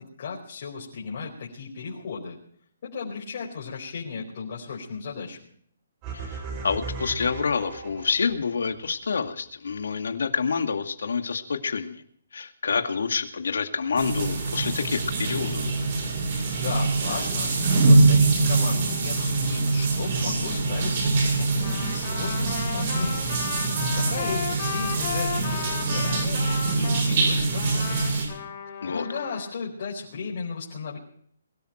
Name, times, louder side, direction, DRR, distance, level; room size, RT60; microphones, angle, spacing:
voice 1, 0.0-2.4 2.8-5.4 16.5-23.4 23.9-28.0 28.8-31.0, left 5 dB, 45° left, -3 dB, 4.8 m, -35 dB
sound 1, 6.0-8.4, right 4 dB, 20° right, 3.8 m, -36 dB
voice 2, 6.1-12.0 12.3-15.7 28.8-29.1, left 5 dB, 75° left, 7 dB, 2.2 m, -28 dB
sound 2, 14.0-28.2, right 3 dB, 40° right, 7.1 m, -24 dB
Trumpet, 21.5-27.1 27.6-29.5, left 8 dB, 30° left, 4.7 m, -35 dB
22.0 x 13.0 x 4.5 m, 0.63 s
hypercardioid pair, 165°, 0 cm